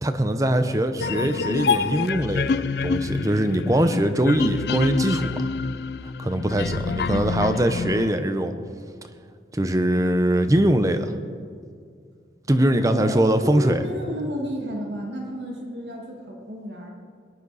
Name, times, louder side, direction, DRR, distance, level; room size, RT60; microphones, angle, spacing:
voice 1, 0.0-2.6 2.8-5.4 6.2-8.5 9.5-11.1 12.5-13.8, right 1 dB, 20° right, 9 dB, 0.7 m, -22 dB
sound 1, 1.0-8.1, left 5 dB, 70° left, 0.4 m, -27 dB
voice 2, 12.7-16.9, equal, 90° right, 0 dB, 2.1 m, -32 dB
20.0 x 11.0 x 4.1 m, 2.1 s
head